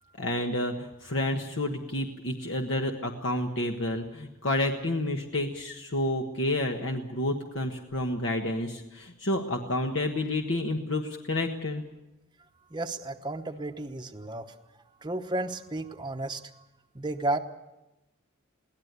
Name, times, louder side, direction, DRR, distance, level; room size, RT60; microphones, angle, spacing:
voice 1, 0.2-11.8, left 1 dB, 60° left, 3 dB, 1.4 m, -30 dB
voice 2, 12.7-14.5 15.0-16.6 16.9-17.4, right 2 dB, 20° right, 6 dB, 1.0 m, -33 dB
22.5 x 17.0 x 8.2 m, 0.96 s
head